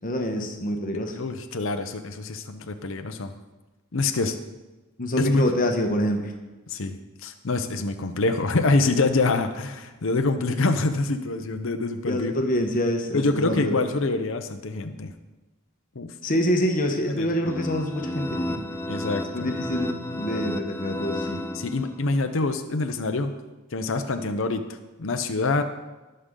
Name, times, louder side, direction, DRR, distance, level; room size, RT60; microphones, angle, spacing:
voice 1, 0.0-1.2 5.0-6.3 12.1-13.8 16.2-18.6 19.3-21.4, equal, 40° left, 3 dB, 1.1 m, -26 dB
voice 2, 1.2-3.3 3.9-4.4 5.2-5.4 6.7-12.3 13.1-15.1 15.9-16.1 17.1-17.3 18.9-19.5 21.5-23.3 23.7-25.6, left 3 dB, 60° left, 7 dB, 0.7 m, -26 dB
sound 1, 17.5-22.2, left 1 dB, 10° left, 0.6 m, -32 dB
19.5 x 6.7 x 3.8 m, 1.1 s
head